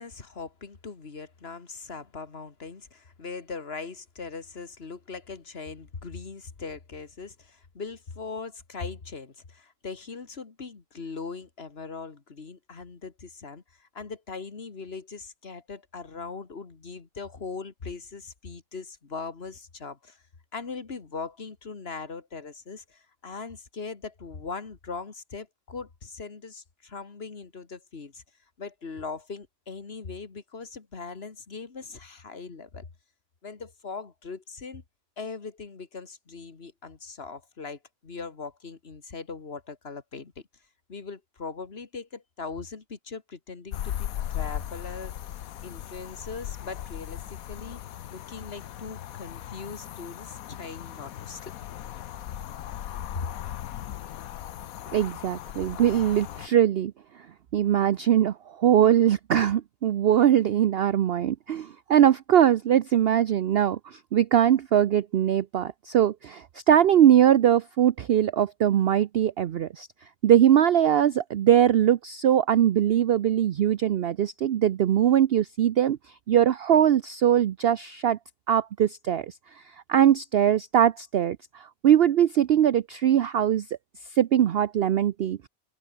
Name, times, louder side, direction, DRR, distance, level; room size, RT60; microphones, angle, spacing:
voice 1, 0.0-20.2 20.5-28.2 28.6-32.9 33.4-34.8 35.2-40.4 40.9-45.3 45.6-47.8 48.1-51.5 53.1-53.3, left 4 dB, 45° left, 2.1 m, -40 dB
sound 1, 43.7-56.5, left 11 dB, 80° left, 1.2 m, -38 dB
voice 2, 54.9-56.9 57.5-69.9 70.2-76.0 76.3-78.2 78.5-79.3 79.9-83.7 84.1-85.5, right 10 dB, 60° right, 0.7 m, -21 dB
omnidirectional pair, 1.5 m